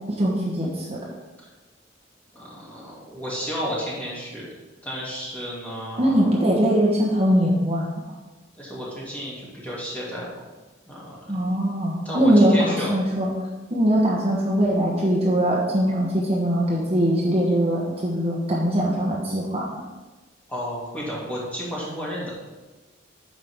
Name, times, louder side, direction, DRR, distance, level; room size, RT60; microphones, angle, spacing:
voice 1, 0.1-1.0 6.0-7.9 11.3-13.3 13.7-19.7, equal, 35° right, -4 dB, 1.2 m, -21 dB
voice 2, 2.3-4.5 4.8-6.3 8.6-10.3 10.9-11.4 12.0-13.0 20.5-22.3, equal, 10° left, -7 dB, 2.6 m, -32 dB
9.5 x 6.3 x 3.7 m, 1.2 s
head